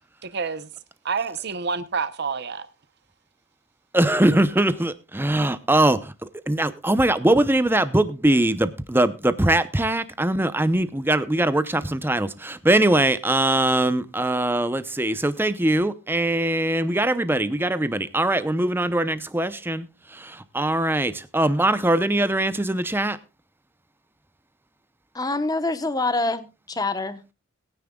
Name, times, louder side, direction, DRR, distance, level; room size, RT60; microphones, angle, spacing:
voice 1, 0.2-0.7 1.0-2.7, right 5 dB, 55° right, 0.8 m, -28 dB
voice 2, 3.9-23.2, right 1 dB, 10° right, 0.7 m, -22 dB
voice 3, 25.1-27.2, left 2 dB, 20° left, 1.0 m, -26 dB
21.5 x 9.7 x 2.3 m
head